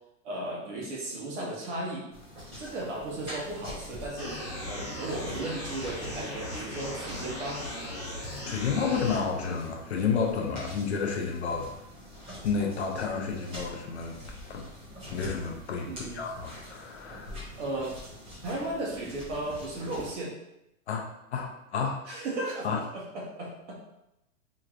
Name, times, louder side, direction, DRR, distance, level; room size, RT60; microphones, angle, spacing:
voice 1, 0.2-2.1 2.6-7.6 15.8-16.2 17.6-17.9 18.4-20.4 22.1-23.8, right 2 dB, 55° right, -3 dB, 1.3 m, -35 dB
sound 1, 2.1-20.2, left 1 dB, 10° right, 0.8 m, -45 dB
sound 2, 4.2-9.2, left 1 dB, 20° left, 1.1 m, -38 dB
voice 2, 8.4-11.7 12.4-14.2 14.5-14.7 15.1-17.4 20.9-22.0 22.6-22.8, left 5 dB, 50° left, 1 dB, 0.6 m, -31 dB
4.4 x 3.1 x 2.5 m, 0.87 s
supercardioid pair, 175°, 43 cm